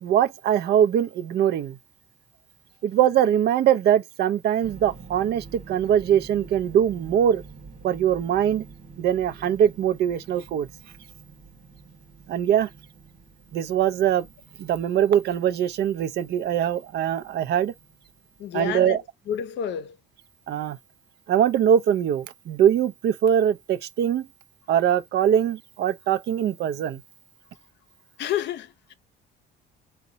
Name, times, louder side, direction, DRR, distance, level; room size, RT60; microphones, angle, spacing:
voice 1, 0.0-1.8 2.8-7.4 7.8-8.6 9.0-10.7 12.3-12.7 13.5-14.3 14.6-17.7 18.5-19.0 20.5-20.8 21.3-24.3 24.7-27.0, right 9 dB, 55° right, 0.5 m, -22 dB
sound 1, 4.6-18.6, right 5 dB, 35° right, 1.3 m, -48 dB
voice 2, 18.4-19.0 19.3-20.0 28.2-28.9, left 9 dB, 65° left, 0.7 m, -29 dB
3.9 x 2.2 x 3.9 m
cardioid pair, 145°, 20 cm